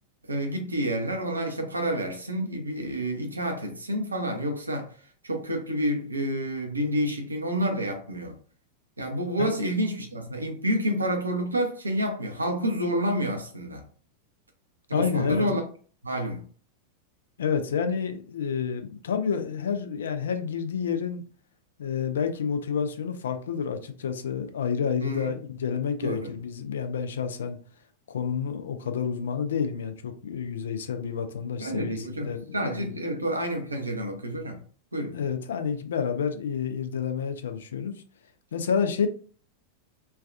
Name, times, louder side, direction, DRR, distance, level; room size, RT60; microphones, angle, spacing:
voice 1, 0.3-4.9 5.2-8.4 9.0-13.8 14.9-15.6 16.0-16.4 25.0-25.4 26.0-26.3 31.6-34.6 34.9-35.2, equal, 80° right, 0.6 m, -29 dB
voice 2, 14.9-15.6 17.4-21.2 21.8-27.6 28.1-32.9 35.1-37.9 38.5-39.1, left 6 dB, 65° left, 0.4 m, -29 dB
3.2 x 2.3 x 2.5 m
figure-of-eight pair, 90°, 0 cm